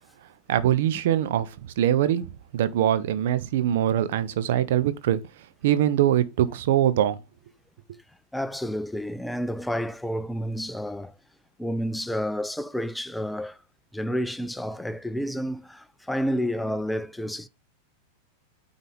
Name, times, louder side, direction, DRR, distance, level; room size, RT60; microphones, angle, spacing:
voice 1, 0.5-5.2 5.6-7.2, right 11 dB, 55° right, 0.6 m, -23 dB
voice 2, 8.3-11.1 11.6-13.6 13.9-17.5, equal, 5° left, 0.4 m, -30 dB
9.0 x 4.0 x 3.2 m
figure-of-eight pair, 90°, 0 cm